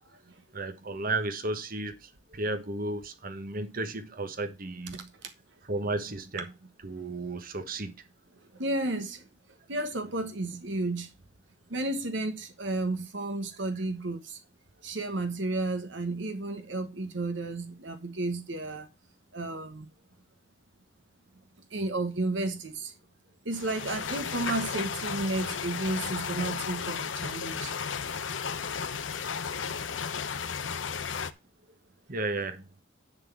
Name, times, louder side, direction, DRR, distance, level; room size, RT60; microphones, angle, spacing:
voice 1, 0.5-5.1 5.7-6.5 6.8-7.9 32.1-32.7, right 2 dB, 50° right, 1.3 m, -33 dB
voice 2, 8.5-9.3 9.7-11.1 11.7-14.4 14.8-18.9 19.3-19.9 21.7-22.9 23.4-27.7, right 2 dB, 70° right, 1.2 m, -32 dB
sound 1, 23.5-31.3, left 6 dB, 80° left, 0.8 m, -34 dB
10.5 x 4.1 x 7.2 m
head